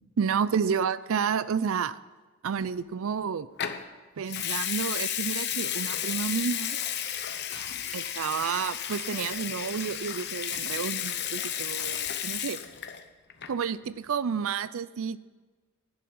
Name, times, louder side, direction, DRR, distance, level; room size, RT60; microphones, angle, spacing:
voice 1, 0.2-2.0 2.4-3.5 4.2-6.8 7.9-12.6 13.5-15.2, right 6 dB, 65° right, 17 dB, 0.4 m, -30 dB
sound 1, 2.4-3.0 3.3-3.4 4.3-5.2 7.5-8.4 11.8-12.7, left 4 dB, 80° left, 3.0 m, -51 dB
Water tap faucet / Sink (filling or washing) / Liquid, 3.6-3.8 4.3-13.0 13.3-13.6, left 10 dB, 50° left, 0.8 m, -33 dB
11.0 x 6.8 x 7.6 m, 1.3 s
head